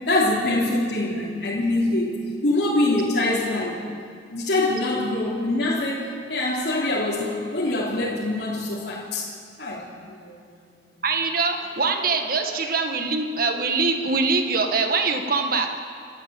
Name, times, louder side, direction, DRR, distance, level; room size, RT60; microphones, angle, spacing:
voice 1, 0.1-3.8 4.3-9.3 9.6-10.8 12.4-12.6, left 2 dB, 70° left, -7 dB, 3.4 m, -24 dB
voice 2, 11.0-15.8, right 4 dB, 55° right, 5 dB, 1.8 m, -23 dB
29.5 x 13.0 x 7.7 m, 2.2 s
head